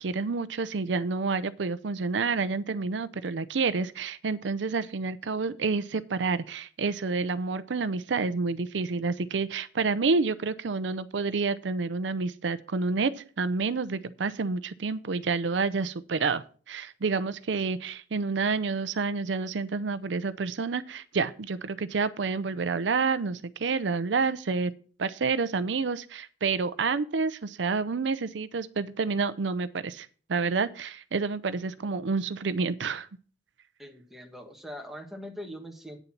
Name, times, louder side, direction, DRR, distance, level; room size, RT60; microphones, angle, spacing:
voice 1, 0.0-24.7 25.0-33.1, right 4 dB, 75° right, 14 dB, 0.6 m, -29 dB
voice 2, 33.8-36.0, equal, ahead, 3 dB, 1.4 m, -42 dB
9.2 x 6.9 x 5.8 m, 0.41 s
head